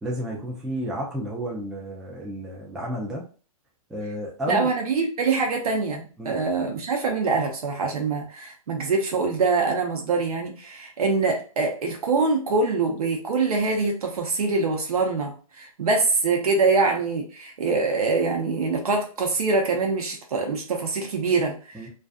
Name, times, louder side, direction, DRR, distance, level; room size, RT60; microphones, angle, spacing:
voice 1, 0.0-3.2 3.9-4.7 6.2-6.4 21.7-21.9, equal, 5° right, -3 dB, 0.3 m, -31 dB
voice 2, 4.5-21.9, right 4 dB, 80° right, 2 dB, 0.7 m, -24 dB
2.4 x 2.4 x 2.3 m, 0.37 s
hypercardioid pair, 145°, 19 cm